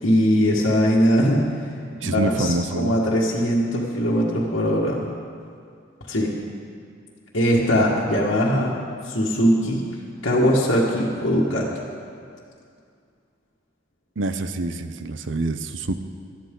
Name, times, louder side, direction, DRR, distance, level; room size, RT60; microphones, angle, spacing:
voice 1, 0.0-1.5 2.0-5.1 6.1-6.3 7.3-8.8 9.0-9.8 10.2-11.7, equal, 75° left, -6 dB, 1.7 m, -20 dB
voice 2, 2.0-3.0 14.2-16.0, right 2 dB, 70° right, 10 dB, 0.7 m, -26 dB
18.5 x 12.5 x 3.8 m, 2.3 s
head